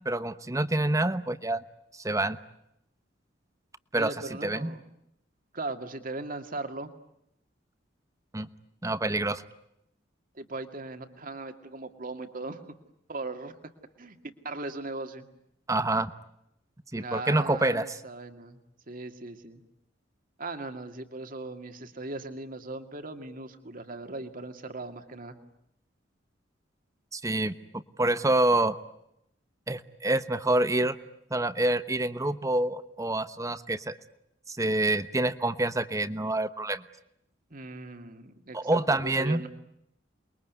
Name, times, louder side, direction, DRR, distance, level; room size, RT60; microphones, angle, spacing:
voice 1, 0.0-1.6 2.0-2.4 3.9-4.1 4.4-4.8 8.3-8.5 8.8-9.4 15.7-16.1 16.9-17.8 27.1-27.5 28.0-28.8 29.7-31.0 31.3-34.0 34.5-36.8 38.5-39.4, right 2 dB, 20° right, 13 dB, 1.0 m, -27 dB
voice 2, 3.9-4.8 5.5-6.9 10.3-12.8 13.1-13.5 14.0-15.3 16.9-18.6 18.9-19.6 20.4-25.4 37.5-39.5, right 2 dB, 50° right, 7 dB, 2.3 m, -38 dB
28.5 x 22.0 x 9.5 m, 0.81 s
head